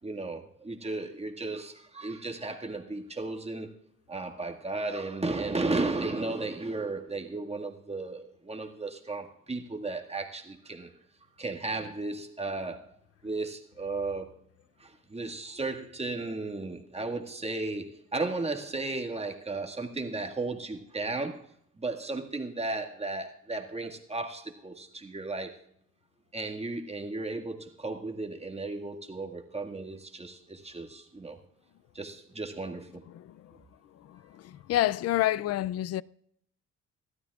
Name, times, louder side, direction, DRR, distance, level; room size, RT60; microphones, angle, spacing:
voice 1, 0.0-3.8 4.1-10.9 11.4-13.0 13.2-14.3 14.8-25.6 26.3-31.4 31.9-33.0, right 3 dB, 20° right, 1.9 m, -35 dB
voice 2, 33.1-33.6 33.9-36.0, left 14 dB, 55° left, 0.4 m, -29 dB
26.0 x 12.5 x 2.4 m
cardioid pair, 90°, 30 cm